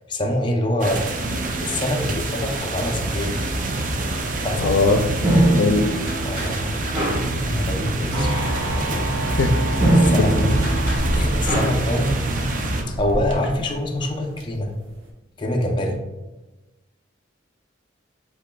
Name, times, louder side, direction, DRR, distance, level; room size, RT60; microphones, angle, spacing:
voice 1, 0.1-1.0 1.5-3.4 4.4-4.7 6.2-6.9 7.4-8.3 8.8-9.1 10.0-10.5 11.1-12.3 12.9-14.7 15.4-16.0, left 1 dB, 25° left, 1 dB, 0.6 m, -25 dB
sound 1, 0.8-12.8, right 2 dB, 45° right, 0.5 m, -25 dB
voice 2, 4.6-5.0 5.5-5.9 9.4-9.5 10.2-10.3, left 3 dB, 85° left, 6 dB, 0.5 m, -19 dB
sound 2, 4.9-13.0, right 1 dB, 25° right, 1.4 m, -24 dB
sound 3, 7.7-15.1, right 1 dB, 75° right, 0.8 m, -31 dB
7.9 x 3.0 x 2.2 m, 1.1 s
head